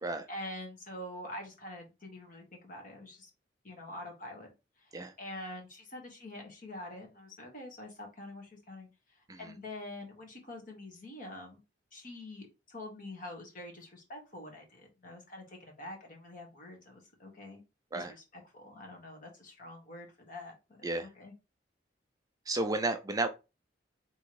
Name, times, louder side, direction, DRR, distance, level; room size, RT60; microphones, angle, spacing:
voice 1, 0.3-3.3 3.6-4.5 4.8-11.6 11.9-17.6 17.9-20.6 21.0-21.3, left 1 dB, 50° left, 1.6 m, -46 dB
voice 2, 22.5-23.3, right 2 dB, 20° right, 0.4 m, -32 dB
3.5 x 3.0 x 4.7 m
head